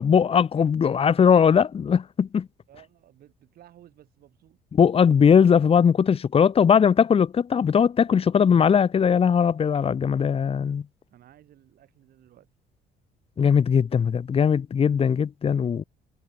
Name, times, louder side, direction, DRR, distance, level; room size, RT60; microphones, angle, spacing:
voice 1, 0.0-2.5 4.7-10.8 13.4-15.8, left 7 dB, 35° left, 1.3 m, -20 dB
voice 2, 2.7-4.6 11.1-12.5, right 12 dB, 65° right, 4.7 m, -54 dB
cardioid pair, 110°, 17 cm